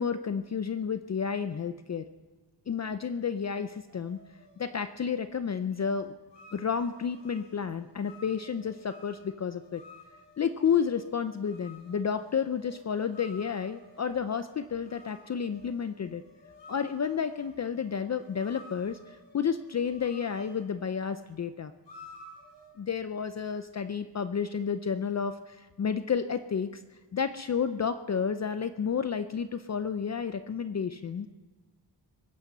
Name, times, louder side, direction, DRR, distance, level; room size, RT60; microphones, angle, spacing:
voice 1, 0.0-2.1 2.7-4.2 4.6-6.1 6.5-9.8 10.4-16.2 16.7-21.7 22.8-26.8 27.1-31.3, left 7 dB, 40° left, 11 dB, 0.5 m, -31 dB
sound 1, 3.9-5.2 6.3-20.7 21.9-22.7, left 2 dB, 75° left, 6.3 m, -54 dB
22.5 x 9.9 x 5.5 m, 1.3 s
wide cardioid pair, 125°, 43 cm